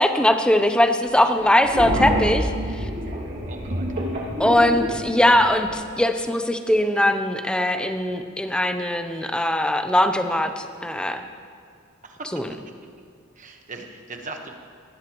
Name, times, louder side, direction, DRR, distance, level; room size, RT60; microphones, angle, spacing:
voice 1, 0.0-2.9 4.4-11.2 12.3-12.5, left 1 dB, 5° left, 7 dB, 0.6 m, -21 dB
sound 1, 1.4-5.8, equal, 55° right, 2.5 m, -28 dB
voice 2, 3.5-3.9 12.0-12.3 13.4-14.5, right 3 dB, 40° right, 4 dB, 1.2 m, -39 dB
18.5 x 14.0 x 3.1 m, 2.3 s
head